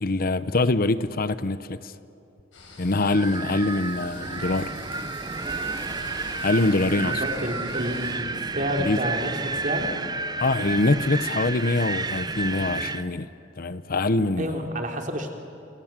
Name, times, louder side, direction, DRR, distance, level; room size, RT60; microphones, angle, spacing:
voice 1, 0.0-1.9 2.8-4.7 6.4-7.2 8.8-9.1 10.4-13.3 13.6-14.6, left 2 dB, 50° left, 0.8 m, -24 dB
sound 1, 2.5-8.1, left 2 dB, 85° left, 7.5 m, -43 dB
Wind, 3.1-13.1, right 3 dB, 20° right, 0.9 m, -31 dB
voice 2, 6.9-9.3 9.6-9.9 14.4-15.3, equal, 45° right, 3.4 m, -29 dB
27.5 x 27.0 x 7.5 m
head